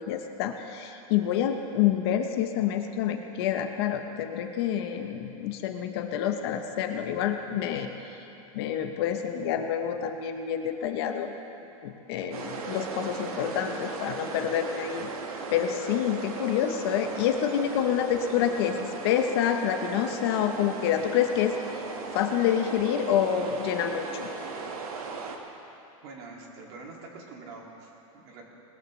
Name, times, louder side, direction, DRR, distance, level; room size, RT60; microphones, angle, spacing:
voice 1, 0.0-7.9 8.5-11.3 11.8-15.1 15.5-21.5 22.1-24.3, left 9 dB, 45° left, 6 dB, 0.8 m, -27 dB
sound 1, 12.3-25.4, right 4 dB, 85° right, 1.7 m, -37 dB
voice 2, 26.0-28.4, right 3 dB, 45° right, -1 dB, 2.4 m, -45 dB
20.0 x 13.5 x 3.2 m, 2.8 s
supercardioid pair, 170°, 18 cm